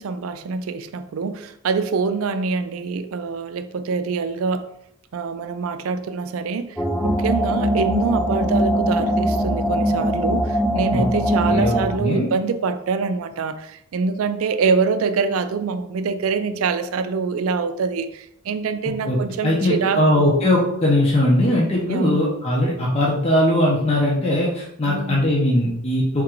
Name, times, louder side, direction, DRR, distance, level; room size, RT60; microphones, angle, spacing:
voice 1, 0.0-4.7 5.1-20.3 21.9-22.2 24.8-25.2, right 5 dB, 90° right, 10 dB, 0.4 m, -25 dB
sound 1, 6.8-12.0, equal, ahead, 0.3 m, -21 dB
voice 2, 11.4-12.3 19.0-26.2, left 1 dB, 30° left, -4 dB, 0.8 m, -20 dB
3.7 x 2.5 x 4.4 m, 0.74 s
head